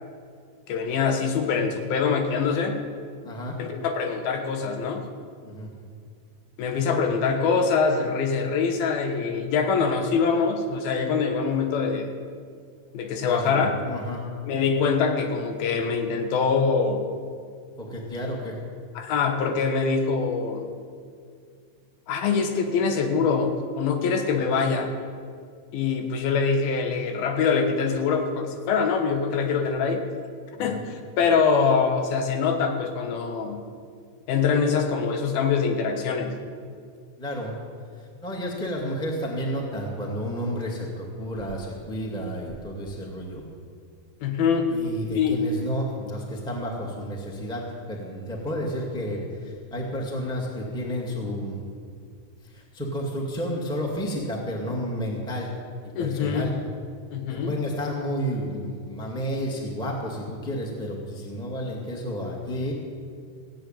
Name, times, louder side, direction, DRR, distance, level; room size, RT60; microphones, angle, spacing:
voice 1, 0.7-2.8 3.6-5.1 6.6-12.1 12.9-13.8 14.4-17.0 19.0-20.7 22.1-24.9 25.7-30.0 30.6-33.6 34.3-36.4 44.2-44.7 45.1-45.4 56.0-56.5 57.1-57.5, left 5 dB, 90° left, 5 dB, 3.2 m, -24 dB
voice 2, 3.2-3.6 5.4-5.7 13.2-14.2 17.8-18.6 30.6-30.8 37.2-37.6 38.2-43.4 44.7-51.6 52.4-55.5 55.8-56.5 57.3-62.7, equal, ahead, -1 dB, 1.3 m, -31 dB
16.5 x 7.7 x 9.1 m, 2.2 s
omnidirectional pair, 4.2 m